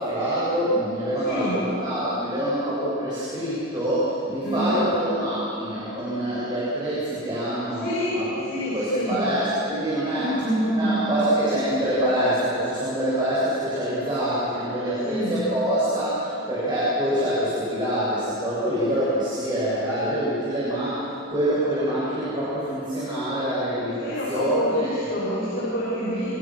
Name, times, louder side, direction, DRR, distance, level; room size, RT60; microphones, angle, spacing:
voice 1, 0.0-7.9 8.1-10.3 10.8-24.9, right 1 dB, 25° right, -9 dB, 7.7 m, -25 dB
voice 2, 1.2-1.6 4.4-4.9 7.7-9.2 10.2-11.1 15.0-15.5 24.0-26.4, equal, 55° left, -8 dB, 7.6 m, -27 dB
29.0 x 26.5 x 6.5 m, 3.0 s
head